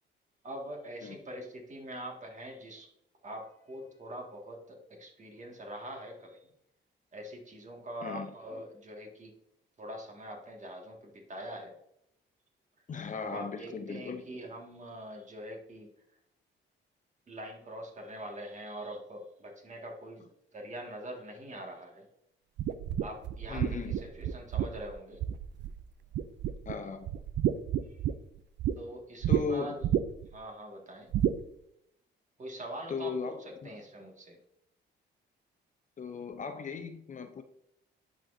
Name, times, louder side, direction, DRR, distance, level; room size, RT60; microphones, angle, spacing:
voice 1, 0.4-2.9 3.2-6.5 7.1-9.3 9.8-11.7 13.1-15.9 17.3-22.1 23.0-25.2 27.9-28.0 28.8-29.8 30.3-31.1 32.4-34.4, right 1 dB, 35° right, 1 dB, 2.0 m, -43 dB
voice 2, 8.0-8.3 12.9-14.2 23.5-23.9 26.7-27.1 29.3-29.8 32.9-33.7 36.0-37.4, left 5 dB, 40° left, 7 dB, 0.6 m, -37 dB
sound 1, 22.6-25.8 26.1-26.7 27.0-28.7 29.2-29.4 29.8-30.3 31.1-31.4, right 11 dB, 65° right, 0.4 m, -30 dB
10.5 x 4.4 x 2.7 m, 0.77 s
cardioid pair, 90°, 20 cm